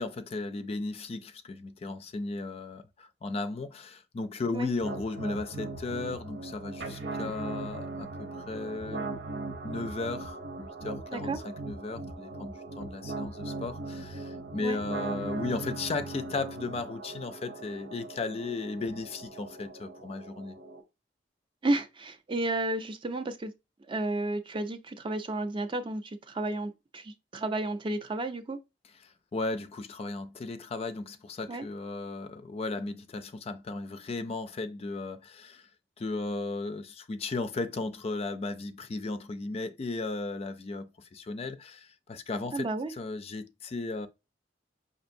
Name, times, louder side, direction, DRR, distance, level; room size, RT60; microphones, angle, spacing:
voice 1, 0.0-9.2 9.6-20.5 29.0-35.7 36.0-44.1, left 3 dB, 35° left, 0.4 m, -35 dB
sound 1, 4.8-20.8, right 3 dB, 80° right, 0.9 m, -39 dB
voice 2, 21.6-23.5 23.9-28.6 31.5-31.6 42.5-42.9, right 2 dB, 30° right, 0.4 m, -32 dB
5.2 x 2.5 x 2.6 m
head